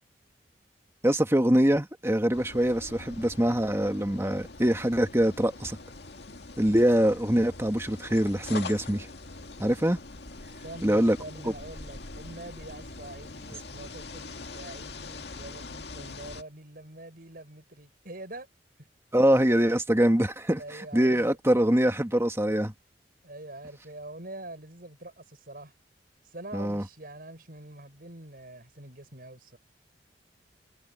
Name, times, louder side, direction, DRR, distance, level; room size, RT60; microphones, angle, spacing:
voice 1, 1.0-5.8 6.6-9.1 9.6-10.0 10.8-11.2 19.1-22.7 26.5-26.8, equal, 15° right, 1.8 m, -24 dB
sound 1, 2.3-16.4, left 3 dB, 65° left, 2.2 m, -43 dB
voice 2, 10.6-18.5 18.8-18.9 20.6-21.4 23.2-25.7 26.2-29.6, right 2 dB, 55° right, 7.4 m, -44 dB
head